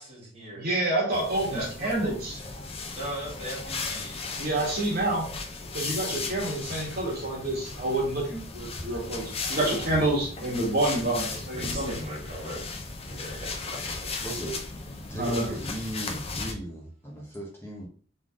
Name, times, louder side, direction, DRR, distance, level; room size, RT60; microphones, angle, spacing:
voice 1, 0.0-0.7 1.5-2.1 2.9-4.2 6.1-6.2 6.6-6.7 9.0-9.1 9.4-9.9 11.3-12.6 13.1-14.1, right 1 dB, 30° right, -6 dB, 2.4 m, -39 dB
voice 2, 0.5-2.4 4.4-5.3 5.7-9.2 9.5-11.9 15.1-15.5, right 1 dB, 50° right, -3 dB, 1.9 m, -28 dB
sound 1, 1.1-16.5, left 3 dB, 30° left, 0.7 m, -36 dB
voice 3, 14.2-14.6 15.1-17.9, right 1 dB, 10° left, -3 dB, 1.1 m, -36 dB
3.8 x 3.5 x 3.7 m, 0.44 s
head